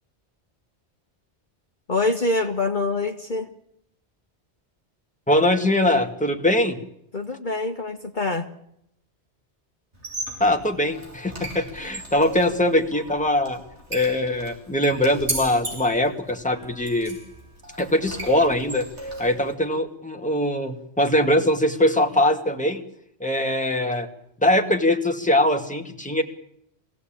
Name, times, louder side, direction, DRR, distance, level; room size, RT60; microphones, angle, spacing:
voice 1, 1.9-3.5 7.1-8.5, left 2 dB, 45° left, 3 dB, 1.5 m, -25 dB
voice 2, 5.3-6.8 10.4-13.6 13.9-17.2 17.8-18.9 19.2-22.8 23.2-24.1 24.4-26.2, left 1 dB, 5° left, 2 dB, 2.2 m, -22 dB
Squeak, 9.9-19.5, right 1 dB, 80° right, 5.1 m, -37 dB
24.0 x 16.5 x 9.0 m, 0.76 s
omnidirectional pair, 1.2 m